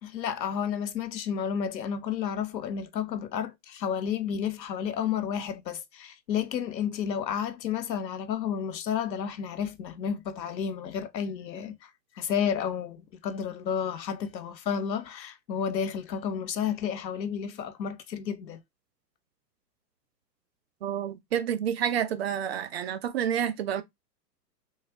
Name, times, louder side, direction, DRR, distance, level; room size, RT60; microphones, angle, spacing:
voice 1, 0.0-11.9 12.2-18.6, left 8 dB, 85° left, 0.8 m, -31 dB
voice 2, 20.8-23.8, right 9 dB, 40° right, 0.4 m, -29 dB
3.2 x 2.2 x 3.4 m
hypercardioid pair, 125°, 50 cm